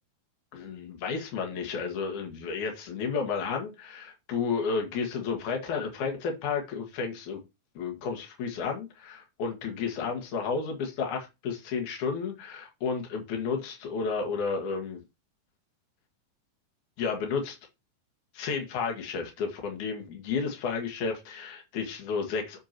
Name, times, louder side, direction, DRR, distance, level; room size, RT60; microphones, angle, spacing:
voice 1, 0.5-7.4 7.7-15.0 17.0-17.6 18.3-22.6, left 5 dB, 60° left, 3.1 m, -32 dB
8.1 x 6.9 x 3.0 m
omnidirectional pair, 4.1 m